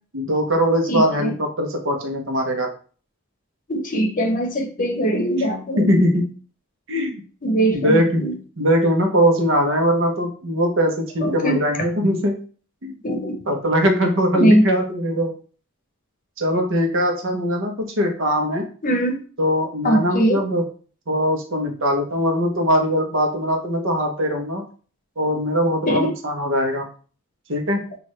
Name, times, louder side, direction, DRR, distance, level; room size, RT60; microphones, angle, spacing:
voice 1, 0.1-2.7 5.8-6.2 6.9-7.2 7.7-8.2 8.6-12.4 12.8-12.9 13.5-15.3 16.4-18.7 19.4-20.6 21.1-24.6 25.2-26.9 27.5-27.8, equal, 65° right, 3 dB, 1.0 m, -21 dB
voice 2, 0.9-1.3 3.7-6.0 7.4-8.4 11.2-11.6 13.0-13.4 14.3-14.7 18.8-19.2 19.8-20.4 25.8-26.1, right 1 dB, 40° left, 4 dB, 0.8 m, -21 dB
6.0 x 2.5 x 3.1 m, 0.41 s
head